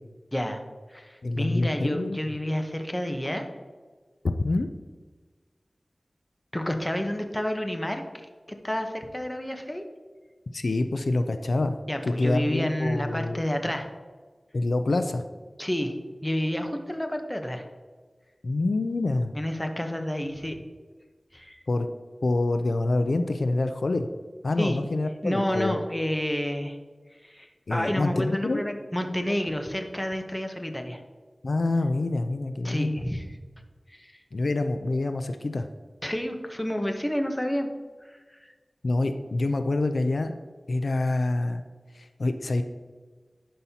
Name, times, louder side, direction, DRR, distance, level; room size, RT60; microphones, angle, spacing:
voice 1, 0.3-0.6 0.9-3.4 6.5-8.3 8.6-9.8 11.9-13.9 15.6-15.9 16.2-17.7 19.3-20.6 21.3-21.6 24.6-24.8 25.2-26.8 27.2-31.0 32.6-33.3 33.9-34.1 36.0-37.7 38.0-38.4, equal, 15° left, 5 dB, 0.8 m, -29 dB
voice 2, 1.2-2.2 4.4-4.7 10.5-11.8 12.0-13.4 14.5-15.2 18.4-19.3 21.7-21.9 22.2-24.1 24.4-25.8 27.7-28.6 31.4-33.0 34.3-35.7 38.8-40.3 40.7-41.6 41.9-42.6, left 2 dB, 80° left, 8 dB, 0.4 m, -26 dB
11.0 x 5.5 x 2.8 m, 1.4 s
wide cardioid pair, 60°, 0 cm